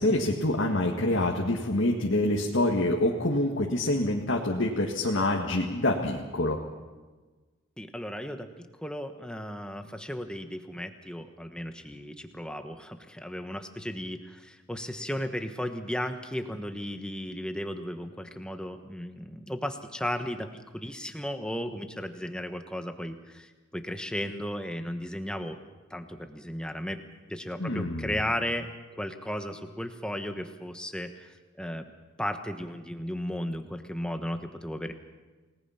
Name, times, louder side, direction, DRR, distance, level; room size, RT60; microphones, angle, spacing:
voice 1, 0.0-6.6 27.6-28.2, left 1 dB, 60° left, -1 dB, 1.8 m, -26 dB
voice 2, 7.8-25.6 25.9-27.0 27.3-28.7 29.0-31.8 32.2-34.9, equal, 5° left, 6 dB, 1.2 m, -35 dB
29.0 x 19.0 x 5.8 m, 1.3 s
head